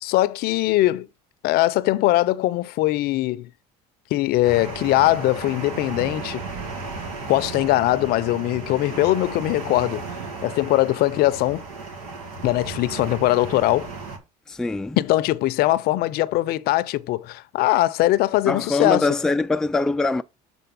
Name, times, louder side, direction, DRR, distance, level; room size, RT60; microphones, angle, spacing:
voice 1, 0.0-1.1 1.4-3.5 4.1-6.4 7.3-10.1 10.4-11.6 12.4-13.9 15.0-19.1, left 16 dB, 60° left, 0.5 m, -21 dB
sound 1, 4.4-14.2, right 4 dB, 85° right, 1.9 m, -34 dB
voice 2, 14.5-15.0 18.5-20.2, left 3 dB, 5° left, 0.3 m, -23 dB
6.9 x 4.0 x 5.4 m
supercardioid pair, 95°, 18 cm